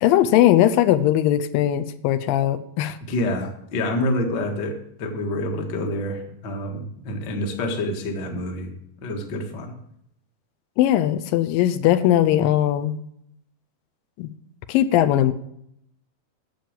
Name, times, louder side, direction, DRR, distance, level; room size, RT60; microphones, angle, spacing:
voice 1, 0.0-3.0 10.8-13.0 14.2-14.3 14.7-15.3, left 12 dB, 80° left, 13 dB, 2.3 m, -19 dB
voice 2, 3.1-8.7 9.0-9.7, left 1 dB, 45° left, 2 dB, 1.4 m, -27 dB
10.5 x 7.0 x 7.4 m, 0.73 s
omnidirectional pair, 4.1 m